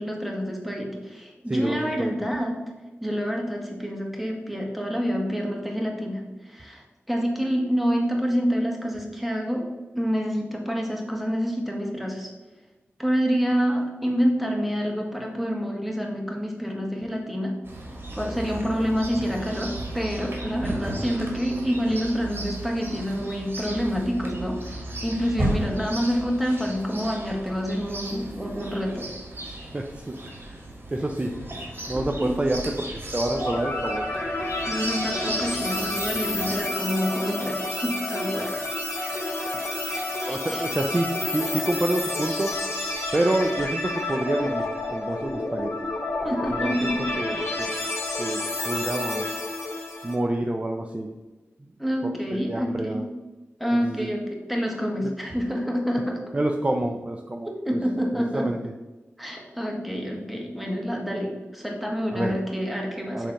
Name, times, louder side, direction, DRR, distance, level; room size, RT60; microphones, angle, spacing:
voice 1, 0.0-2.5 3.0-9.7 9.9-12.3 13.0-17.5 18.1-29.1 31.9-32.3 34.7-38.6 39.0-39.5 39.9-40.7 46.2-47.1 51.8-53.0 53.6-56.2 57.4-58.5 59.2-63.3, equal, ahead, 0 dB, 1.6 m, -27 dB
voice 2, 1.5-2.1 29.7-30.1 30.4-30.6 30.9-31.3 31.9-32.6 32.9-34.1 39.5-39.6 40.3-42.5 43.1-44.6 44.9-45.7 46.5-46.7 47.2-47.7 48.2-48.4 48.7-49.2 50.0-51.1 52.3-53.0 53.8-54.1 56.3-57.5 58.3-58.6 62.1-62.3 63.1-63.3, right 1 dB, 25° right, 2 dB, 0.6 m, -27 dB
Chirp tweet, 17.6-36.6, right 1 dB, 55° right, 2.2 m, -35 dB
sound 1, 33.3-50.1, left 2 dB, 65° left, 2.2 m, -30 dB
7.6 x 3.3 x 5.7 m, 1.1 s
wide cardioid pair, 70°, 5 cm